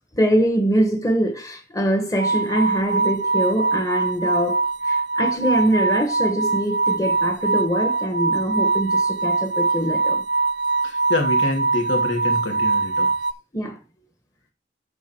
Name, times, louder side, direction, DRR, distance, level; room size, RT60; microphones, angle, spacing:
voice 1, 0.2-10.2 13.5-13.8, right 1 dB, 15° left, 1.5 m, -23 dB
sound 1, 2.2-13.3, right 3 dB, 65° right, 0.6 m, -22 dB
voice 2, 10.8-13.1, left 2 dB, 85° left, 2.8 m, -26 dB
12.5 x 4.2 x 4.6 m
head